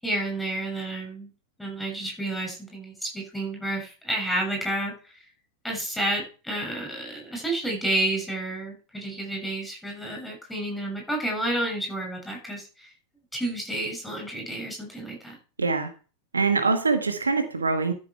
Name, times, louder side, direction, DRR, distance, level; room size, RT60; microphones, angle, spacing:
voice 1, 0.0-1.3 1.6-5.2 5.6-12.9 13.3-15.4, right 1 dB, 5° left, 1 dB, 6.9 m, -30 dB
voice 2, 15.6-15.9 16.3-17.9, right 4 dB, 75° right, 8 dB, 1.5 m, -24 dB
13.5 x 7.3 x 4.6 m, 0.35 s
figure-of-eight pair, 90°, 0 cm